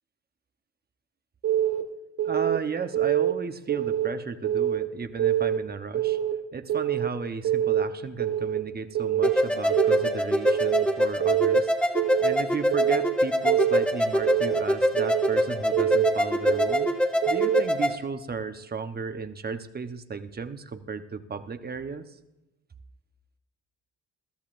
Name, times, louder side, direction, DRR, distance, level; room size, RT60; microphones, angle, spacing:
Keyboard (musical) / Alarm, 1.4-1.8 2.2-2.6 2.9-3.3 3.7-4.1 4.4-4.8 5.2-5.6 5.9-6.3 6.7-7.1 7.4-7.8 8.2-8.6 8.9-9.3 9.7-10.1 10.5-10.8 11.2-11.6 12.0-12.3 12.7-13.1 13.5-13.8 14.2-14.6 15.0-15.3 15.7-16.1 16.5-16.9 17.2-17.6, right 11 dB, 80° right, 1.7 m, -25 dB
voice 1, 2.2-6.2 6.5-11.7 12.2-16.9 17.3-22.0, right 5 dB, 30° right, 9 dB, 1.0 m, -34 dB
sound 1, 9.2-18.0, equal, 5° left, 1.8 m, -25 dB
21.0 x 13.5 x 2.6 m, 0.98 s
cardioid pair, 90°, 30 cm